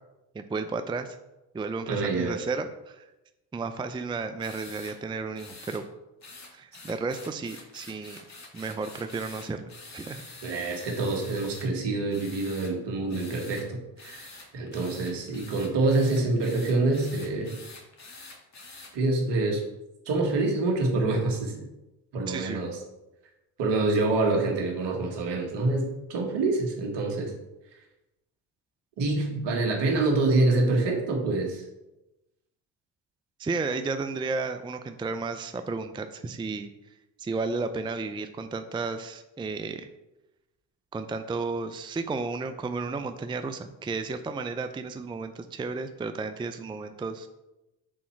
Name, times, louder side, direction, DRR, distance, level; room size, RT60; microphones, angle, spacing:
voice 1, 0.3-1.2 1.5-3.1 3.5-5.8 6.5-8.2 8.5-10.2 22.3-22.6 33.4-36.7 37.2-39.9 40.9-47.3, right 4 dB, 10° right, 8 dB, 0.5 m, -33 dB
voice 2, 1.9-2.4 10.4-17.6 18.9-19.6 20.1-21.7 22.1-22.8 23.6-27.3 29.0-31.6, right 2 dB, 65° right, 2 dB, 2.0 m, -26 dB
sound 1, 4.4-4.9 5.4-5.8 6.2-11.7 12.1-12.7 13.1-13.6 14.0-18.9, left 3 dB, 35° left, 2.1 m, -46 dB
6.5 x 4.2 x 5.9 m, 0.98 s
hypercardioid pair, 65°, 45 cm